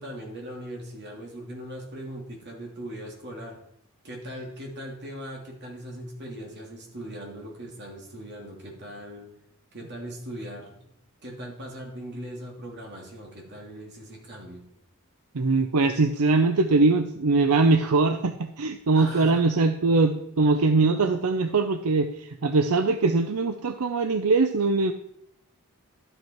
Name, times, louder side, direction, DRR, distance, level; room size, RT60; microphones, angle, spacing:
voice 1, 0.0-3.6 4.0-9.3 9.7-10.9 11.2-14.6 19.0-19.6, equal, 50° right, 0 dB, 2.9 m, -39 dB
voice 2, 15.3-24.9, right 3 dB, 80° right, 8 dB, 0.6 m, -22 dB
12.0 x 8.0 x 4.5 m, 0.75 s
head